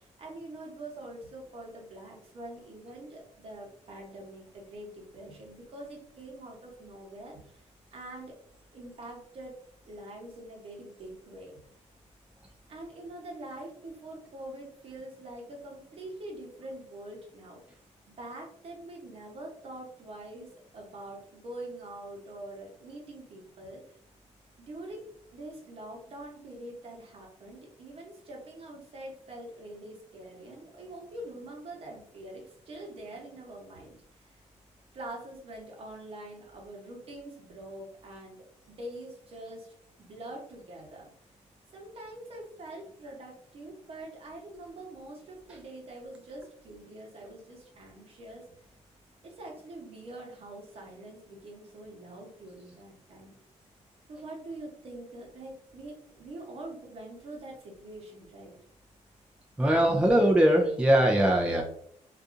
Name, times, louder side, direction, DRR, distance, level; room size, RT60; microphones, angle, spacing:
voice 1, 0.0-7.6 7.9-8.4 8.7-9.6 9.9-11.6 12.7-17.6 18.2-23.8 24.7-25.0 25.3-34.4 34.9-41.1 41.7-48.5 49.2-53.4 54.1-58.5, right 1 dB, 50° right, 0 dB, 0.9 m, -44 dB
voice 2, 59.6-61.6, right 1 dB, 10° right, 1 dB, 0.4 m, -22 dB
2.6 x 2.4 x 2.4 m, 0.65 s
cardioid pair, 100°, 12 cm